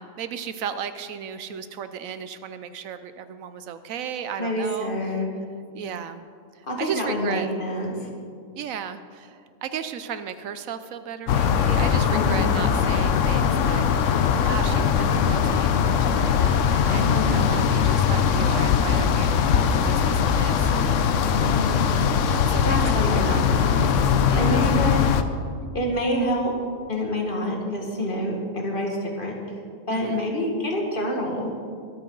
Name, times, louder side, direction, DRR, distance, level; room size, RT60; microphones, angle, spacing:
voice 1, 0.0-4.9 5.7-6.2 6.6-7.5 8.6-13.9 14.1-20.9 22.3-23.4 24.3-24.7 29.9-30.2, right 7 dB, 80° right, 11 dB, 1.1 m, -35 dB
voice 2, 4.4-5.3 6.7-8.0 12.1-12.5 16.9-17.4 21.3-21.8 22.6-23.9 24.3-25.0 25.7-26.5 26.9-29.4 29.9-31.5, equal, 40° left, 0 dB, 2.0 m, -27 dB
sound 1, 11.3-25.2, left 7 dB, 70° left, 1.0 m, -21 dB
23.0 x 9.2 x 3.9 m, 2.3 s
omnidirectional pair, 1.4 m